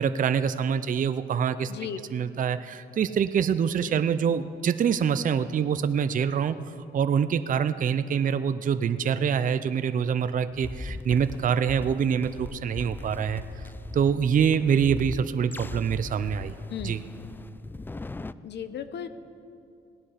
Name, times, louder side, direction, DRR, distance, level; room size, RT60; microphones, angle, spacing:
voice 1, 0.0-1.7 2.1-6.6 6.9-13.4 13.9-16.5 16.8-17.0, right 7 dB, 40° right, 12 dB, 0.5 m, -25 dB
voice 2, 1.7-2.0 16.7-17.1 18.4-19.1, left 9 dB, 60° left, 11 dB, 0.9 m, -35 dB
sound 1, 10.5-18.3, left 2 dB, 10° left, 0.3 m, -40 dB
18.0 x 9.7 x 5.7 m, 2.5 s
cardioid pair, 90°, 20 cm